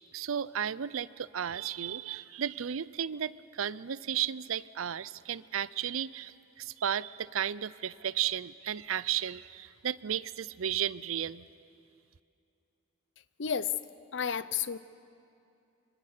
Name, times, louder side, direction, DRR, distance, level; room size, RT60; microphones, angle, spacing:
voice 1, 0.1-11.5, right 9 dB, 90° right, 19 dB, 0.5 m, -34 dB
voice 2, 13.4-13.7 14.1-14.8, left 7 dB, 65° left, 15 dB, 0.7 m, -31 dB
25.5 x 25.0 x 6.6 m, 2.6 s
head